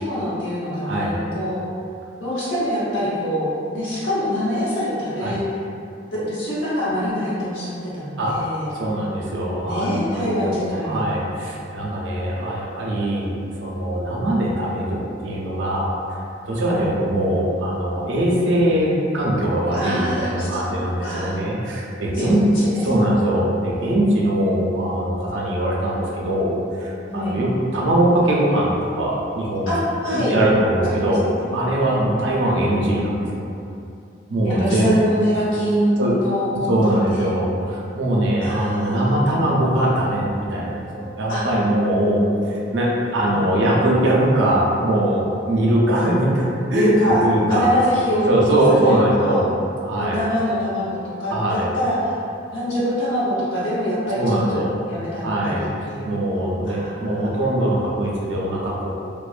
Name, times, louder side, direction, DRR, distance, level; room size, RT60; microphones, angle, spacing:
voice 1, 0.0-1.6 2.2-5.4 6.1-8.7 9.7-11.2 16.6-16.9 19.7-21.4 22.1-22.9 23.1-23.2 27.1-27.4 29.7-30.4 30.8-31.5 31.9-32.1 34.4-37.3 38.4-39.1 41.3-41.5 43.3-43.7 46.7-47.2 47.5-49.5 49.9-52.1 52.5-54.6 54.9-56.2 56.7-57.4, equal, 90° left, -9 dB, 0.8 m, -24 dB
voice 2, 0.8-1.2 5.2-5.3 8.2-8.4 8.7-13.3 13.6-15.9 16.5-22.5 22.8-29.7 30.1-31.2 31.5-33.4 34.3-34.9 36.0-36.2 36.7-46.9 47.2-47.7 48.3-49.4 49.8-50.2 51.3-51.7 54.2-54.7 55.2-58.9, right 1 dB, 75° right, -4 dB, 0.5 m, -21 dB
2.4 x 2.1 x 2.4 m, 2.5 s
head